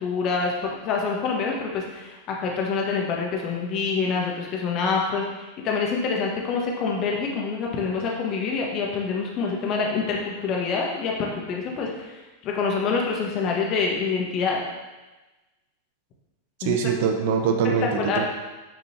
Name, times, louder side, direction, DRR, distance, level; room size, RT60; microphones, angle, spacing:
voice 1, 0.0-5.2 5.6-12.1 12.4-14.6 16.6-16.8 18.0-18.2, left 5 dB, 35° left, -1 dB, 1.6 m, -26 dB
voice 2, 16.6-18.2, right 6 dB, 50° right, 4 dB, 0.8 m, -23 dB
8.9 x 6.1 x 2.9 m, 1.1 s
figure-of-eight pair, 90°, 0 cm